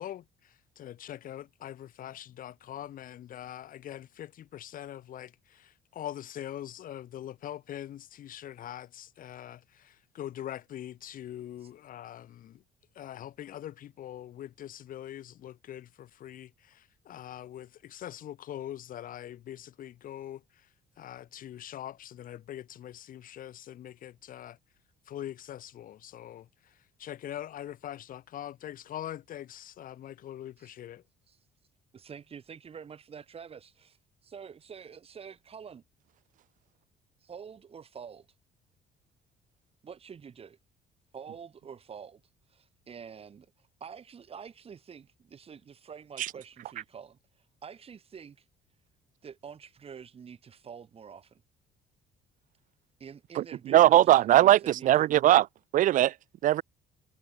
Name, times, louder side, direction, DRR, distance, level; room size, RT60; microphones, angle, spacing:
voice 1, 0.0-12.6 12.9-20.7 21.0-24.6 25.1-31.0, left 11 dB, 55° left, 1.1 m, -43 dB
voice 2, 31.9-34.0 34.2-35.8 37.2-38.3 39.8-40.6 41.1-42.2 42.5-48.4 49.2-51.4 53.0-55.4, right 7 dB, 35° right, 1.5 m, -47 dB
voice 3, 53.4-55.4 55.7-56.1 56.4-56.6, right 13 dB, 50° right, 0.4 m, -20 dB
cardioid pair, 110°, 17 cm